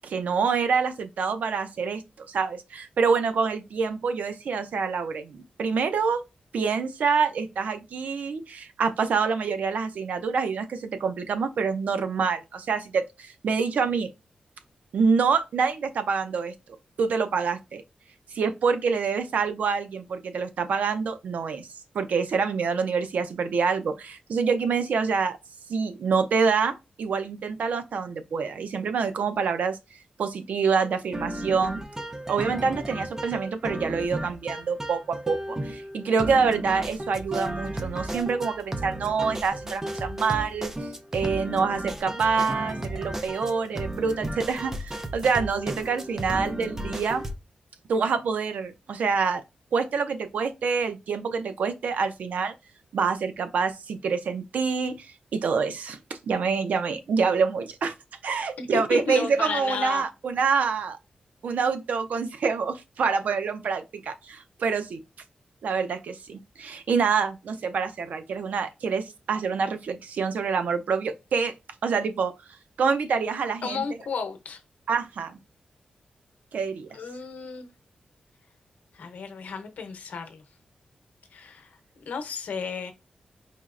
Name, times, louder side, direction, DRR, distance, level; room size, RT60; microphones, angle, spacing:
voice 1, 0.0-6.2 6.5-14.1 14.9-16.5 17.0-17.8 18.3-21.7 21.9-25.4 25.7-29.8 30.2-31.8 32.3-40.7 41.1-47.2 47.9-49.4 49.7-52.5 52.9-55.1 55.3-57.9 58.2-61.0 61.4-65.0 65.6-71.5 71.8-72.3 72.8-73.8 74.9-75.4 76.5-77.0, right 5 dB, 80° right, 0.6 m, -26 dB
sound 1, 31.1-47.3, right 1 dB, 20° right, 0.5 m, -34 dB
voice 2, 58.6-60.0 73.6-74.6 76.9-77.7 78.9-80.4 81.3-81.8 82.1-82.9, left 5 dB, 85° left, 0.8 m, -33 dB
4.4 x 3.0 x 2.4 m
wide cardioid pair, 135°, 3 cm